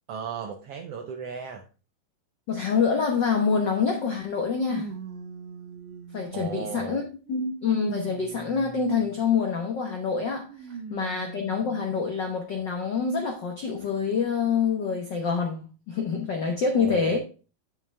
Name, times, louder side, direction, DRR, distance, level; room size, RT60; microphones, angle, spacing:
voice 1, 0.1-1.6 6.3-7.0 16.8-17.2, right 6 dB, 80° right, 1.3 m, -35 dB
voice 2, 2.5-4.9 6.1-7.0 7.3-10.5 10.9-17.2, left 5 dB, 90° left, 0.9 m, -26 dB
sound 1, 3.4-3.5 4.6-6.7 7.3-9.3 10.5-11.9 12.6-12.7 13.8-13.9, right 5 dB, 60° right, 1.7 m, -41 dB
9.2 x 7.0 x 3.4 m
omnidirectional pair, 3.9 m